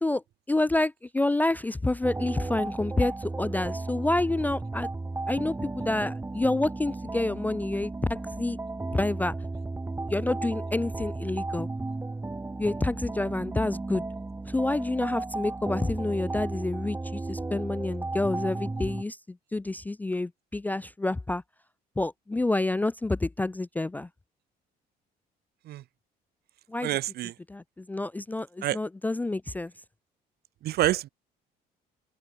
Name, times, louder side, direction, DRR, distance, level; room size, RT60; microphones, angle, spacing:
voice 1, 0.0-4.9 5.3-8.6 8.9-9.3 10.1-11.7 12.6-14.0 14.5-21.4 22.0-24.1 26.7-26.9 27.5-29.7, left 2 dB, 10° left, 0.4 m, -28 dB
sound 1, 2.0-19.0, right 2 dB, 15° right, 1.7 m, -34 dB
voice 2, 26.8-27.3 28.6-28.8 30.6-31.1, right 14 dB, 70° right, 1.7 m, -27 dB
open air
cardioid pair, 110°, 17 cm